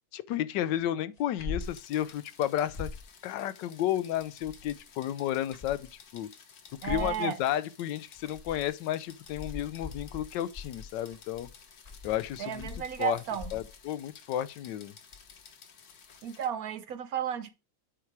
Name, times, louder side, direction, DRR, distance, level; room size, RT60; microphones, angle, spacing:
voice 1, 0.1-2.9 3.2-5.9 6.1-6.3 6.8-11.5 12.0-12.7 13.0-13.2 13.5-14.9, left 12 dB, 85° left, 1.2 m, -32 dB
sound 1, 1.2-1.8 2.1-2.2 2.5-3.1 4.2-4.8 5.3-6.0 6.7-7.2 8.0-8.7 9.1-13.8 15.1-15.4 16.1-16.2, left 4 dB, 30° left, 0.9 m, -42 dB
sound 2, 1.6-16.5, left 6 dB, 60° left, 1.6 m, -54 dB
voice 2, 6.8-7.4 12.4-13.5 16.2-17.5, right 9 dB, 65° right, 1.0 m, -33 dB
8.4 x 4.6 x 4.6 m
omnidirectional pair, 1.9 m